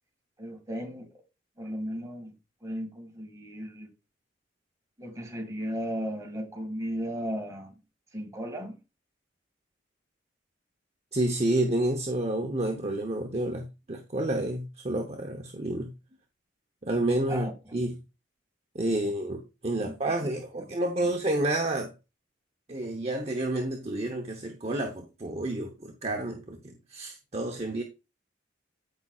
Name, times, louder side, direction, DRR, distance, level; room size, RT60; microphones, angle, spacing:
voice 1, 0.4-1.1 1.6-2.3 2.6-3.9 5.0-7.7 8.1-8.8 17.3-17.5 19.8-19.9 21.0-21.1, equal, 15° right, 2.0 m, -35 dB
voice 2, 11.1-15.9 16.8-17.5 17.7-17.9 18.7-21.9 22.7-27.8, right 1 dB, 35° right, 0.9 m, -29 dB
14.5 x 5.4 x 2.4 m
head